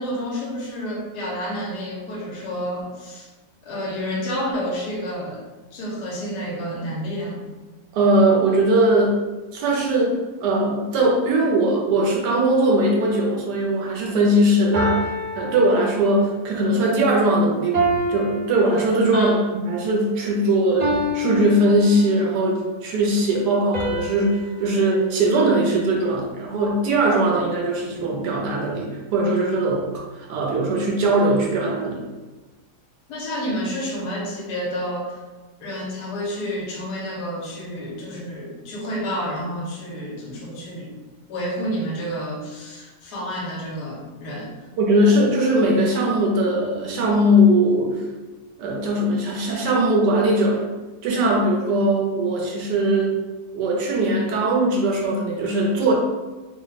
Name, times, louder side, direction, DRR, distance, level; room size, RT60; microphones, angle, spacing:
voice 1, 0.0-3.3 3.6-5.4 5.7-7.4 19.1-19.4 33.1-35.2 35.6-40.9 41.3-44.5, equal, 75° left, -2 dB, 1.3 m, -29 dB
voice 2, 7.9-9.2 9.5-15.1 15.4-19.3 19.6-32.1 44.8-48.0 48.6-50.6 51.0-53.1 53.5-55.9, right 1 dB, 75° right, -1 dB, 1.3 m, -20 dB
sound 1, 13.3-13.6 14.7-16.4 17.7-19.4 20.8-22.4 23.7-26.2, right 1 dB, 45° right, 0.5 m, -28 dB
3.3 x 2.1 x 3.9 m, 1.2 s
omnidirectional pair, 1.8 m